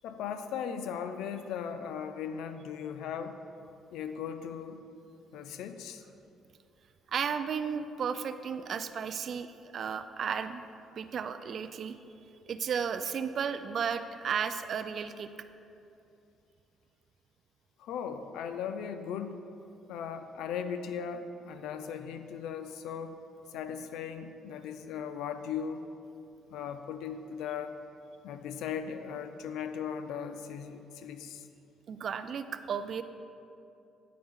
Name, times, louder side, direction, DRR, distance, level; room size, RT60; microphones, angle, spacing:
voice 1, 0.0-3.4 3.9-4.8 5.3-6.0 17.8-19.4 19.9-23.2 23.5-25.8 26.5-27.8 28.2-31.5, left 7 dB, 90° left, 9 dB, 0.4 m, -38 dB
voice 2, 7.1-9.5 9.7-10.6 10.9-12.0 12.5-15.3 31.9-33.0, right 7 dB, 55° right, 11 dB, 0.3 m, -34 dB
9.2 x 4.3 x 3.7 m, 2.7 s
cardioid pair, 100°, 0 cm